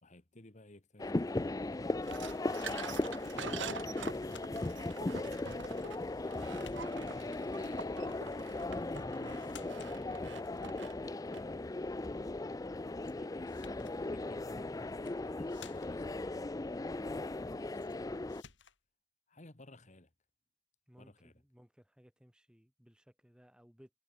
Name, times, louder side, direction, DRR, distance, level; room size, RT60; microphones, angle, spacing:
voice 1, 0.0-3.9 4.6-5.7 6.0-6.8 7.4-8.9 9.8-11.9 13.2-18.4 19.3-20.1 21.0-21.4, left 1 dB, 35° left, 1.5 m, -59 dB
sound 1, 1.0-18.4, left 2 dB, 15° left, 0.4 m, -38 dB
sound 2, 2.0-11.6, right 6 dB, 65° right, 1.4 m, -46 dB
sound 3, 3.0-3.3 4.2-4.8 5.8-6.3 6.5-7.2 8.9-9.1 9.4-10.0 13.0-13.2 13.5-14.0 14.9-15.2 15.5-16.1 17.8-18.0 18.3-18.8, left 6 dB, 60° left, 3.9 m, -55 dB
voice 2, 20.9-23.9, equal, 5° right, 1.6 m, -62 dB
head